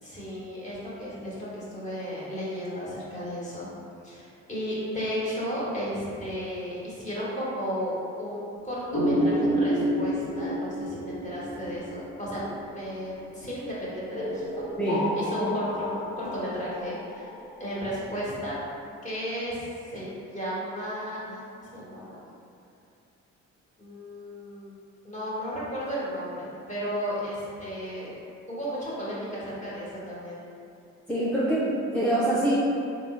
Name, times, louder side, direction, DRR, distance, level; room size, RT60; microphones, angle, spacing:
voice 1, 0.0-3.7 4.0-14.5 15.2-18.6 19.0-22.2 23.8-24.8 25.0-28.2 28.5-30.4, equal, 25° left, -8 dB, 1.2 m, -34 dB
sound 1, 8.9-13.2 14.1-17.9, equal, 70° left, 0.9 m, -30 dB
voice 2, 31.1-32.6, right 1 dB, 5° left, -9 dB, 0.5 m, -25 dB
3.5 x 2.0 x 3.7 m, 2.6 s
cardioid pair, 90°, 30 cm